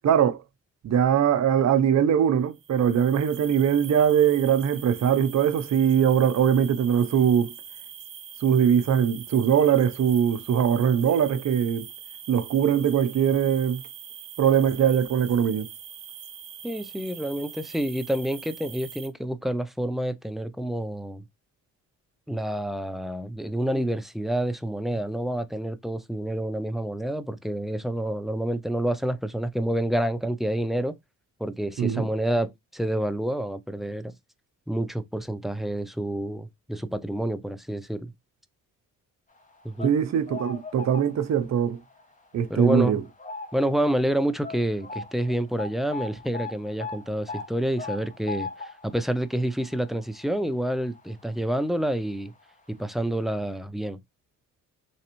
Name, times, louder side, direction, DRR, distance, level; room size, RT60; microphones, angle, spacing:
voice 1, 0.0-0.4 0.8-7.5 8.4-11.9 12.3-13.8 14.4-15.7 31.8-32.1 39.8-41.8 42.3-43.0, right 8 dB, 55° right, 0.6 m, -21 dB
sound 1, 2.5-19.1, right 8 dB, 70° right, 1.0 m, -43 dB
voice 2, 16.6-21.2 22.3-31.0 31.4-34.1 34.7-38.1 39.6-40.0 42.5-43.0 43.5-52.3 52.7-54.0, right 1 dB, ahead, 0.4 m, -28 dB
sound 2, 39.5-41.5 41.9-42.1 42.7-43.8 44.0-44.1 44.4-51.5 51.8-51.9 52.8-52.9 53.2-53.3, left 4 dB, 25° left, 0.9 m, -39 dB
3.4 x 3.2 x 2.9 m
cardioid pair, 80°, 33 cm